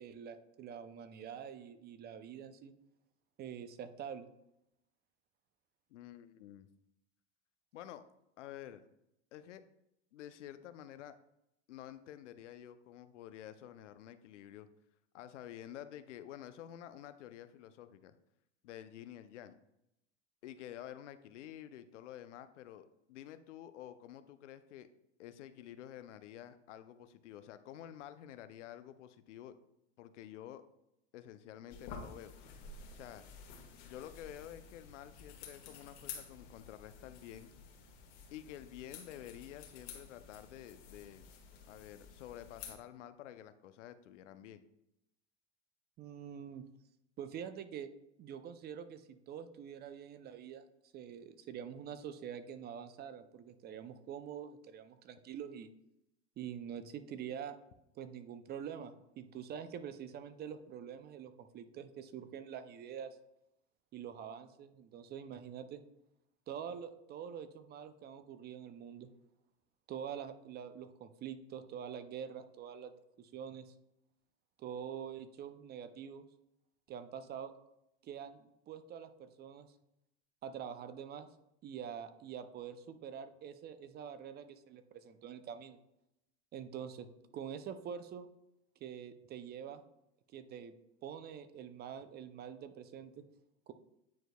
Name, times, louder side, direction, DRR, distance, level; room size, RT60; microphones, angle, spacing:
voice 1, 0.0-2.7 3.4-4.3 46.0-46.6 47.2-47.9 48.2-50.7 50.9-55.7 56.4-57.6 58.0-63.2 63.9-65.8 66.5-69.1 69.9-73.7 74.6-76.3 76.9-77.5 78.0-79.7 80.4-81.3 81.6-85.8 86.5-87.1 87.3-88.3 88.8-89.8 90.3-90.7 91.0-93.2 93.7-93.8, right 8 dB, 30° right, 11 dB, 0.4 m, -45 dB
voice 2, 5.9-6.7 7.7-8.1 8.4-8.8 9.3-9.6 10.1-11.2 11.7-14.7 15.1-18.2 18.6-19.6 20.4-24.9 25.2-29.5 30.0-30.6 31.1-32.3 32.9-33.2 33.8-37.5 38.3-41.3 41.7-44.6, left 11 dB, 80° left, 11 dB, 0.6 m, -50 dB
sound 1, 31.7-42.8, left 5 dB, 65° left, 1.6 m, -52 dB
9.2 x 4.5 x 2.2 m, 0.82 s
hypercardioid pair, 105°, 35 cm